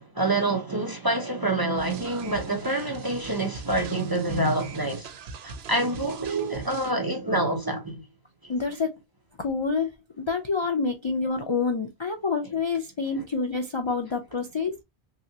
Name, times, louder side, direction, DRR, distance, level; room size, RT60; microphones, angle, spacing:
voice 1, 0.0-5.1 5.4-8.1 13.1-13.2, right 2 dB, 25° right, 0.6 m, -27 dB
sound 1, 1.8-6.9, right 5 dB, 85° right, 0.9 m, -42 dB
voice 2, 8.5-8.9 9.4-9.9 10.2-14.8, left 4 dB, 40° left, 0.4 m, -27 dB
3.3 x 2.7 x 2.6 m
omnidirectional pair, 1.0 m